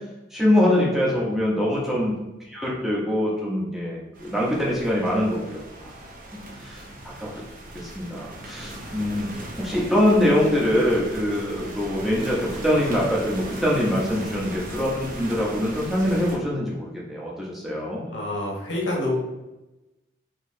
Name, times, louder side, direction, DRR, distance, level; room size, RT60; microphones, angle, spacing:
voice 1, 0.3-2.1 2.5-5.9 6.3-7.3 7.7-9.3 9.6-18.1, left 1 dB, ahead, -6 dB, 0.7 m, -24 dB
sound 1, 4.1-16.4, right 1 dB, 45° right, 0.7 m, -38 dB
voice 2, 18.1-19.1, left 1 dB, 75° left, -2 dB, 1.0 m, -27 dB
3.8 x 2.9 x 2.6 m, 1.0 s
head